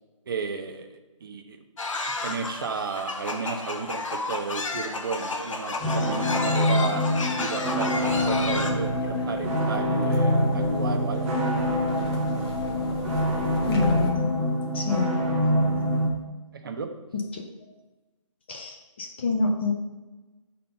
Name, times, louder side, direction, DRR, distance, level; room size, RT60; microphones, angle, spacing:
voice 1, 0.3-1.6 2.2-11.3 16.6-16.9, right 5 dB, 45° right, 6 dB, 0.7 m, -33 dB
sound 1, 1.8-8.7, left 3 dB, 70° left, 1.1 m, -32 dB
sound 2, 5.8-16.1, equal, 10° right, 1.1 m, -25 dB
sound 3, 8.1-14.1, left 2 dB, 45° left, 1.4 m, -38 dB
voice 2, 13.7-14.3 14.7-15.2 17.1-17.5 18.5-19.7, left 3 dB, 20° left, 2 dB, 0.4 m, -27 dB
5.2 x 4.4 x 5.3 m, 1.1 s
figure-of-eight pair, 155°, 17 cm